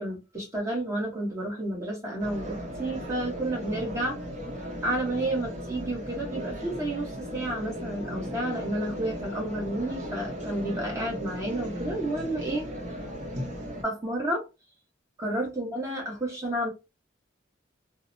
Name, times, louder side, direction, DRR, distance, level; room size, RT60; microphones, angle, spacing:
voice 1, 0.0-4.2 4.8-12.7 13.8-14.5 15.2-16.7, right 1 dB, 15° right, 1.0 m, -31 dB
sound 1, 2.2-13.8, equal, 40° right, 0.9 m, -36 dB
2.7 x 2.0 x 2.6 m
head